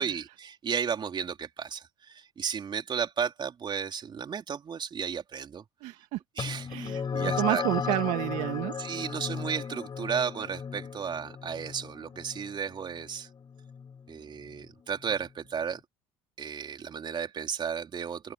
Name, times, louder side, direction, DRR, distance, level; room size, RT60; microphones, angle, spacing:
voice 1, 0.0-5.6 6.4-7.6 8.8-13.3 14.1-15.8 16.4-18.3, right 7 dB, 40° right, 3.8 m, -34 dB
voice 2, 5.8-6.2 6.7-8.8, right 18 dB, 70° right, 1.7 m, -30 dB
sound 1, 6.4-15.2, left 6 dB, 35° left, 6.9 m, -36 dB
open air
hypercardioid pair, 75°, 12 cm